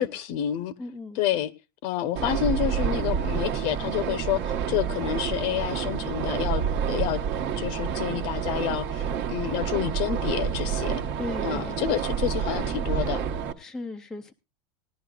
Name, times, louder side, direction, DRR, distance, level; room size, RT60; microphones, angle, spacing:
voice 1, 0.0-0.8 1.2-1.5 1.8-7.2 7.6-11.0 11.4-13.2, left 11 dB, 45° left, 0.8 m, -29 dB
voice 2, 0.8-1.2 11.2-11.8 13.6-14.3, left 3 dB, 5° left, 0.5 m, -37 dB
sound 1, 2.2-13.5, right 7 dB, 45° right, 1.2 m, -28 dB
19.0 x 11.0 x 2.4 m
supercardioid pair, 165°, 12 cm